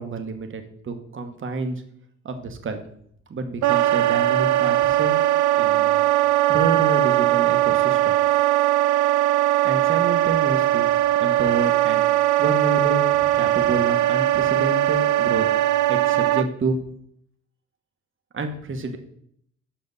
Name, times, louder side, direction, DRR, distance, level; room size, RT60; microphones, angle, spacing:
voice 1, 0.0-1.8 2.2-2.8 3.3-5.2 5.5-6.0 6.5-8.2 9.6-10.8 11.2-12.0 12.4-15.5 15.9-16.8 18.3-19.0, right 3 dB, 40° right, 6 dB, 1.3 m, -28 dB
Wind instrument woodwind instrument, 3.6-16.5, right 14 dB, 75° right, 0.5 m, -20 dB
7.7 x 5.8 x 4.0 m, 0.66 s
cardioid pair, 90°, 30 cm